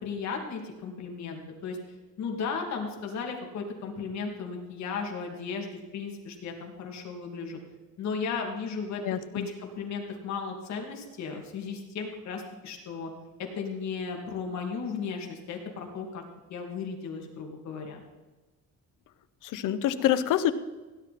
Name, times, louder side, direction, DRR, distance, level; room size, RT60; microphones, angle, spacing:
voice 1, 0.0-1.8 2.2-7.6 8.0-9.0 9.3-13.1 13.4-16.2 16.5-18.0, left 5 dB, 60° left, 2 dB, 2.5 m, -35 dB
voice 2, 9.0-9.5 19.4-20.5, left 11 dB, 75° left, 12 dB, 0.9 m, -26 dB
17.0 x 10.5 x 4.2 m, 1.2 s
cardioid pair, 165°, 32 cm